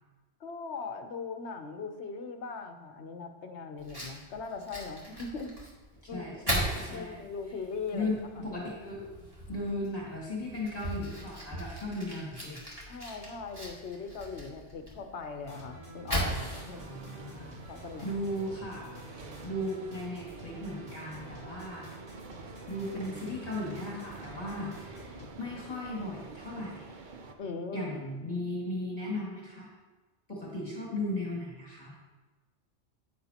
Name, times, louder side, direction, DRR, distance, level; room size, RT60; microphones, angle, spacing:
voice 1, 0.4-5.5 6.1-6.4 6.9-8.1 8.4-8.5 12.9-16.9 17.7-18.1 27.4-27.9, left 4 dB, 75° left, 6 dB, 1.1 m, -40 dB
Fire, 3.8-18.4, equal, 20° right, 2.0 m, -39 dB
voice 2, 6.1-7.3 7.9-9.0 9.5-12.6 16.8-17.5 18.0-19.0 19.4-21.9 22.7-27.0 27.7-29.7 30.3-32.0, left 1 dB, 35° left, -6 dB, 2.2 m, -36 dB
sound 1, 15.4-25.3, right 1 dB, 85° right, 3.4 m, -48 dB
sound 2, 16.5-27.3, right 4 dB, 50° right, 0.8 m, -48 dB
9.7 x 9.2 x 2.9 m, 1.3 s
omnidirectional pair, 1.1 m